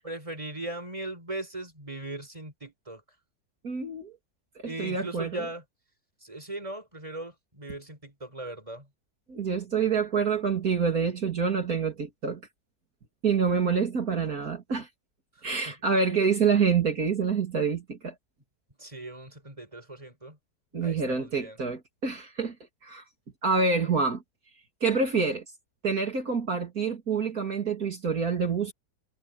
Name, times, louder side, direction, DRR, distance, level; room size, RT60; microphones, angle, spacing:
voice 1, 0.0-3.0 4.6-5.6 6.2-8.9 15.4-15.7 18.8-20.4 20.8-21.6, right 2 dB, 20° right, 6.0 m, -39 dB
voice 2, 3.6-4.1 4.6-5.5 9.3-12.4 13.2-14.9 15.4-18.1 20.7-22.5 22.8-23.0 23.4-24.2 24.8-25.4 25.8-28.7, right 5 dB, 65° right, 3.2 m, -27 dB
omnidirectional pair, 1.7 m